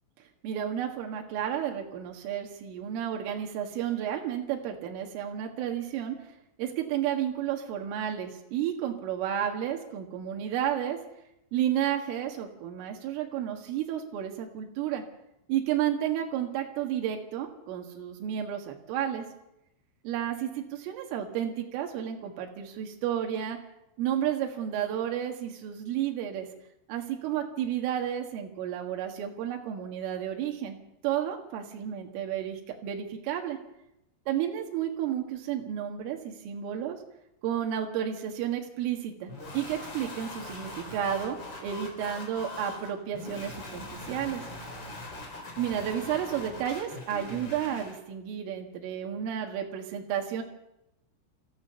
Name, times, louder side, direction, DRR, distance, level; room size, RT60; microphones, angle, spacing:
voice 1, 0.4-6.2 6.6-11.0 11.5-15.0 15.5-19.3 20.0-23.6 24.0-26.5 26.9-30.8 31.0-33.6 34.3-37.0 37.4-44.4 45.6-50.4, right 10 dB, 85° right, 2 dB, 4.3 m, -32 dB
sound 1, 39.3-48.0, left 2 dB, 25° left, 4.1 m, -41 dB
26.0 x 14.5 x 6.9 m, 0.86 s
omnidirectional pair, 5.6 m